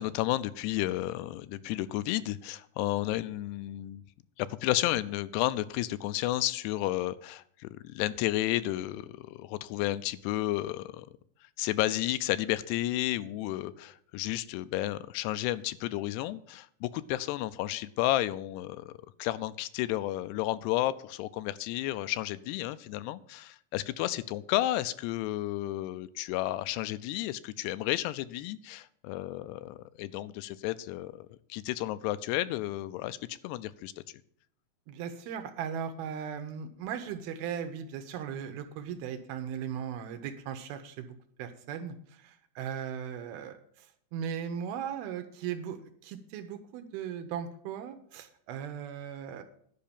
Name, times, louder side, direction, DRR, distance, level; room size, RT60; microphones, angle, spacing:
voice 1, 0.0-4.0 4.4-11.1 11.6-18.9 19.2-33.9, left 15 dB, 85° left, 15 dB, 2.7 m, -32 dB
voice 2, 34.9-41.1 41.4-43.9 44.1-49.4, right 8 dB, 75° right, 9 dB, 2.5 m, -38 dB
10.5 x 5.6 x 8.6 m, 0.63 s
omnidirectional pair, 4.7 m